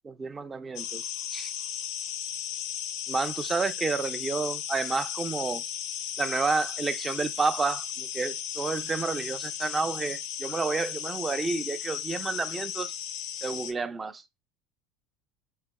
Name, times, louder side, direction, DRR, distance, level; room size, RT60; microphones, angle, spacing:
voice 1, 0.1-1.0 1.3-1.5 3.1-5.6 6.2-12.9 13.4-14.2, right 4 dB, 25° right, 0.5 m, -30 dB
sound 1, 0.8-13.7, left 10 dB, 70° left, 0.5 m, -35 dB
6.4 x 2.8 x 2.2 m
supercardioid pair, 95°, 0 cm